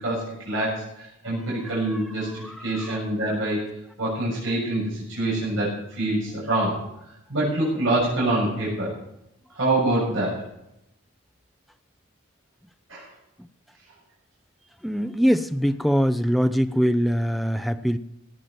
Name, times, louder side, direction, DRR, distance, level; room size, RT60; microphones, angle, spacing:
voice 1, 0.0-3.6 4.0-6.8 7.3-8.9 9.5-10.4 12.9-13.1, right 1 dB, 65° right, -6 dB, 6.8 m, -25 dB
voice 2, 2.4-3.0 13.4-13.5 14.8-18.0, equal, ahead, 10 dB, 0.5 m, -23 dB
17.5 x 9.2 x 5.8 m, 0.82 s
head